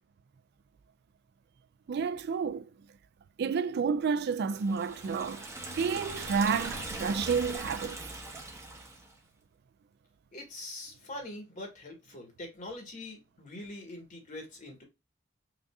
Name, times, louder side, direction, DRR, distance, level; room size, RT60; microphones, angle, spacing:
voice 1, 1.9-2.7 3.4-5.4 5.7-8.0, right 5 dB, 55° right, 0.3 m, -30 dB
Liquid, 4.5-9.1, right 2 dB, 15° right, 0.9 m, -40 dB
voice 2, 10.3-14.8, left 1 dB, 40° left, 1.4 m, -43 dB
5.0 x 2.6 x 2.2 m
head